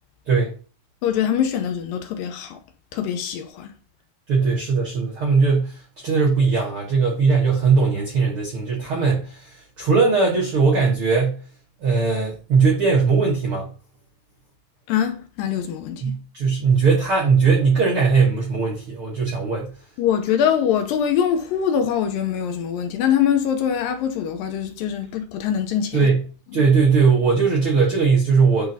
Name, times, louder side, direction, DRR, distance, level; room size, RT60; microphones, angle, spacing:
voice 1, 1.0-2.6 2.9-3.7 14.9-16.2 20.0-26.1 26.5-26.7, left 9 dB, 75° left, 2.3 m, -23 dB
voice 2, 4.3-11.4 11.8-13.7 16.0-19.7 25.9-26.2 26.5-28.7, right 4 dB, 65° right, 1.3 m, -19 dB
10.5 x 3.8 x 2.7 m
omnidirectional pair, 4.4 m